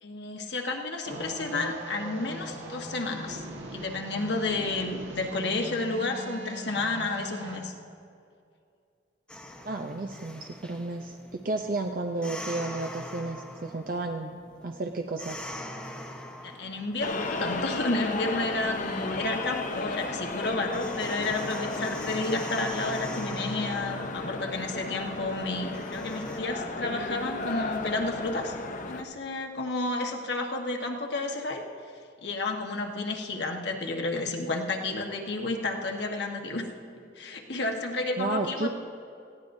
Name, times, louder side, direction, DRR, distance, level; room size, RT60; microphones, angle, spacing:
voice 1, 0.0-3.4 3.7-7.7 16.4-28.5 28.9-31.6 32.2-36.6 37.2-38.7, left 2 dB, 65° left, 2 dB, 1.3 m, -31 dB
sound 1, 1.1-7.6, right 1 dB, 75° right, 1.7 m, -40 dB
sound 2, 9.3-26.4, left 1 dB, 5° left, 1.0 m, -43 dB
voice 2, 9.6-15.4 38.2-38.7, right 2 dB, 50° right, 4 dB, 0.6 m, -32 dB
sound 3, 17.0-29.0, left 3 dB, 45° left, 0.7 m, -34 dB
19.0 x 15.0 x 2.7 m, 2.4 s
head